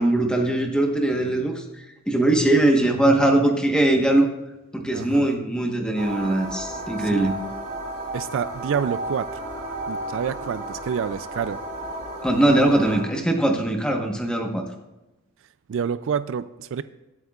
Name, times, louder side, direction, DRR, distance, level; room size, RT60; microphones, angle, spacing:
voice 1, 0.0-1.6 2.1-4.3 4.7-7.3 12.2-14.6, right 1 dB, 5° left, 2 dB, 1.1 m, -21 dB
voice 2, 4.9-5.3 7.0-7.3 8.1-9.3 9.9-11.6 15.7-16.8, right 7 dB, 60° right, 14 dB, 0.3 m, -28 dB
sound 1, 5.9-13.0, right 1 dB, 30° right, 3.1 m, -33 dB
23.5 x 8.1 x 2.4 m, 1.0 s
head